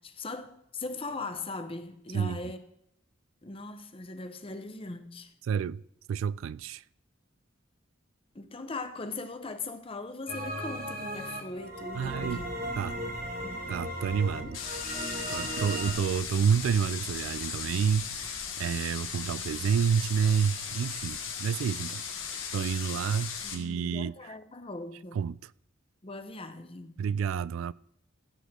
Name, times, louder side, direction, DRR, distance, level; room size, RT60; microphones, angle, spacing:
voice 1, 0.0-2.6 3.4-5.3 8.3-12.4 12.8-13.7 14.2-14.5 22.9-23.0 23.4-25.2 26.0-27.0, left 3 dB, 30° left, 0.9 m, -40 dB
voice 2, 5.5-5.8 6.1-6.8 11.9-12.4 12.8-13.0 13.7-14.6 15.3-22.0 22.5-24.1 25.1-25.5 27.0-27.7, right 7 dB, 80° right, 0.3 m, -29 dB
sound 1, 10.3-15.9, right 1 dB, 45° right, 1.9 m, -36 dB
sound 2, 11.9-21.5, equal, 10° left, 1.6 m, -51 dB
sound 3, 14.5-23.6, left 7 dB, 85° left, 2.0 m, -37 dB
15.0 x 8.3 x 3.8 m
head